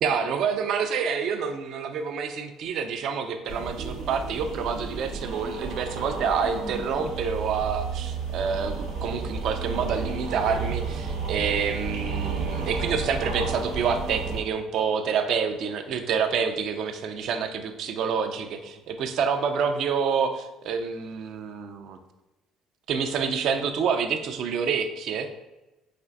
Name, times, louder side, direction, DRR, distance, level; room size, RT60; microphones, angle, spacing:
voice 1, 0.0-22.0 22.9-25.3, right 6 dB, 65° right, 7 dB, 0.4 m, -28 dB
sound 1, 3.5-14.4, right 5 dB, 90° right, 0.8 m, -32 dB
4.2 x 2.4 x 2.5 m, 1.0 s
supercardioid pair, 75°, 0 cm